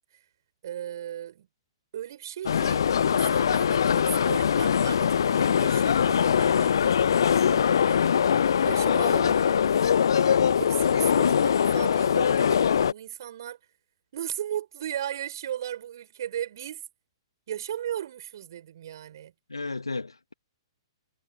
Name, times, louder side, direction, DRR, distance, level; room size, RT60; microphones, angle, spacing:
voice 1, 0.6-1.5 1.9-8.0 8.6-9.5 10.6-13.6 14.1-16.8 17.5-19.3, right 11 dB, 50° right, 7.1 m, -36 dB
sound 1, 2.5-12.9, left 8 dB, 60° left, 0.3 m, -22 dB
voice 2, 9.2-9.8 10.9-11.4 19.5-20.3, left 3 dB, 80° left, 2.6 m, -35 dB
figure-of-eight pair, 115°, 3 cm